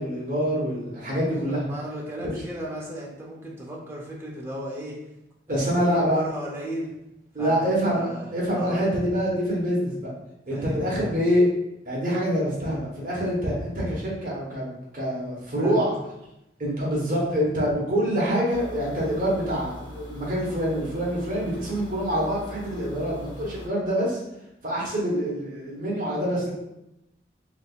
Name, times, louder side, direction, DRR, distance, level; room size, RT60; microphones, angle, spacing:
voice 1, 0.0-1.6 2.2-2.3 5.5-6.2 7.3-10.1 10.5-11.5 11.8-16.0 16.6-24.2 24.6-26.5, equal, 45° right, -5 dB, 1.1 m, -25 dB
voice 2, 1.4-5.0 5.5-7.0 7.4-8.8 10.5-10.9 15.6-15.8, right 1 dB, 15° right, -4 dB, 0.6 m, -35 dB
sound 1, 18.5-23.7, left 1 dB, 70° left, 0.7 m, -41 dB
3.4 x 3.3 x 2.4 m, 0.87 s
head